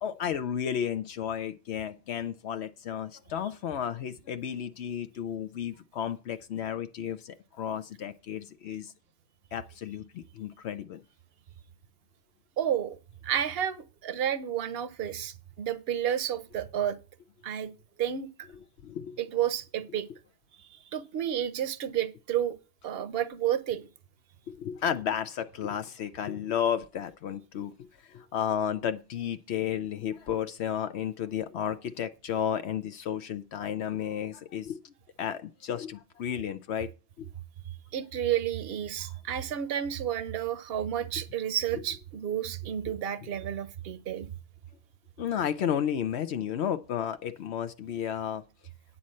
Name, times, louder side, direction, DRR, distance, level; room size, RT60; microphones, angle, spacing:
voice 1, 0.0-8.9 9.5-11.0 18.8-19.2 24.5-27.7 28.0-36.9 37.2-37.3 39.0-39.1 45.2-48.4, left 9 dB, 75° left, 0.9 m, -33 dB
voice 2, 12.6-13.0 13.2-17.0 17.4-17.7 18.0-18.5 19.2-20.1 20.9-22.6 22.8-23.9 37.9-44.3, right 10 dB, 65° right, 1.0 m, -31 dB
9.9 x 4.1 x 7.6 m
omnidirectional pair, 1.1 m